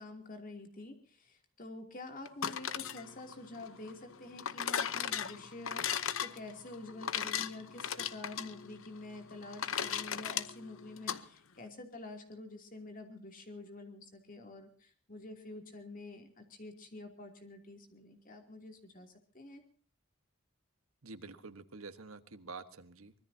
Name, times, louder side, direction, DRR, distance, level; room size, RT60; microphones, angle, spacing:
voice 1, 0.0-19.6, left 2 dB, 40° left, 4 dB, 2.9 m, -48 dB
sound 1, 2.3-11.2, left 8 dB, 70° left, 0.9 m, -37 dB
voice 2, 21.0-23.1, right 3 dB, 85° right, 10 dB, 1.4 m, -48 dB
24.5 x 20.5 x 2.8 m, 0.43 s
head